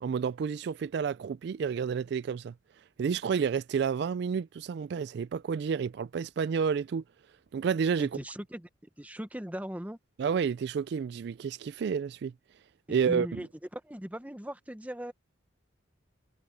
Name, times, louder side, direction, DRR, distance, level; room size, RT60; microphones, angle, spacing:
voice 1, 0.0-2.5 3.0-7.0 7.5-8.1 10.2-12.3 12.9-13.4, right 6 dB, 60° right, 0.3 m, -30 dB
voice 2, 8.0-8.7 9.0-10.0 12.9-15.1, equal, 10° right, 0.9 m, -39 dB
head